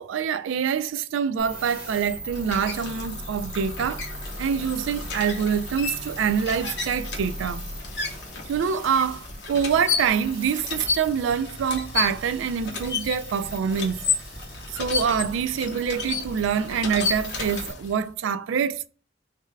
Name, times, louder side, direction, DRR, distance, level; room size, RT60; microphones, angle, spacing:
voice 1, 0.0-4.0 4.4-7.7 8.5-14.0 14.7-18.9, right 7 dB, 80° right, 0.3 m, -25 dB
sound 1, 1.4-17.7, right 1 dB, 5° right, 1.5 m, -39 dB
sound 2, 1.8-18.1, left 4 dB, 60° left, 0.8 m, -33 dB
3.4 x 3.2 x 3.3 m
head